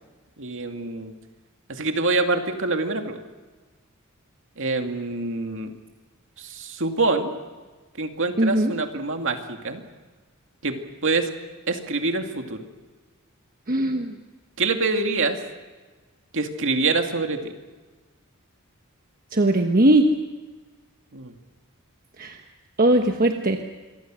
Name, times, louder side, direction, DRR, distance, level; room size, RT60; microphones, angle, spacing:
voice 1, 0.4-1.1 1.7-3.2 4.6-5.7 6.4-7.4 7.9-9.9 10.6-10.8 11.0-11.3 11.7-12.6 14.6-15.4 16.3-17.5 21.1-21.4, right 3 dB, 60° right, 5 dB, 2.4 m, -25 dB
voice 2, 8.4-8.7 13.7-14.1 19.3-20.1 22.2-22.4 22.8-23.6, right 1 dB, 40° right, 4 dB, 1.3 m, -19 dB
27.0 x 23.0 x 6.4 m, 1.3 s
head